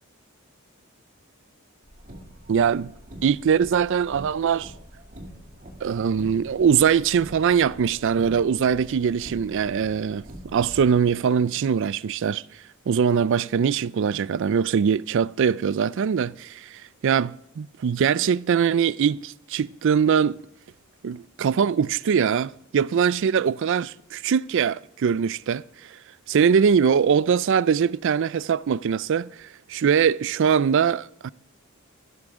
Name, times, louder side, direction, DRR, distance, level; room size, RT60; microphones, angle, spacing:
Car, 1.8-10.9, right 1 dB, 40° right, 2.3 m, -44 dB
voice 1, 2.5-2.9 3.2-4.7 5.8-10.3 10.5-12.4 12.9-20.4 21.0-25.6 26.3-31.3, right 7 dB, 60° right, 0.4 m, -22 dB
16.0 x 12.5 x 3.6 m
head